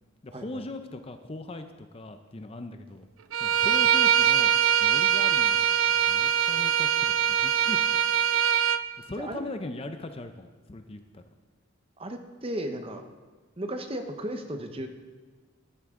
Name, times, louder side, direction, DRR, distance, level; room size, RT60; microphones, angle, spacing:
voice 1, 0.2-3.1 3.4-4.5 4.8-7.8 9.0-11.2, left 2 dB, 30° left, 7 dB, 0.5 m, -40 dB
Bowed string instrument, 3.3-8.8, right 9 dB, 75° right, 0.5 m, -23 dB
voice 2, 12.0-13.0 13.6-14.9, right 1 dB, 25° right, 6 dB, 0.8 m, -35 dB
13.5 x 10.5 x 3.7 m, 1.4 s
head